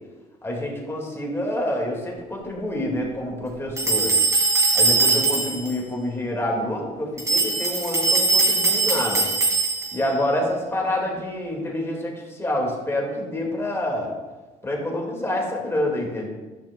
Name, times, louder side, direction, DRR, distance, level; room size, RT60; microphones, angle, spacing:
voice 1, 0.4-4.1 4.7-9.3 9.9-14.1 14.6-16.3, left 1 dB, 15° left, -1 dB, 1.9 m, -27 dB
sound 1, 3.8-5.7 7.2-10.1, right 3 dB, 15° right, 2.1 m, -21 dB
12.0 x 5.8 x 2.2 m, 1.2 s
cardioid pair, 110°, 17 cm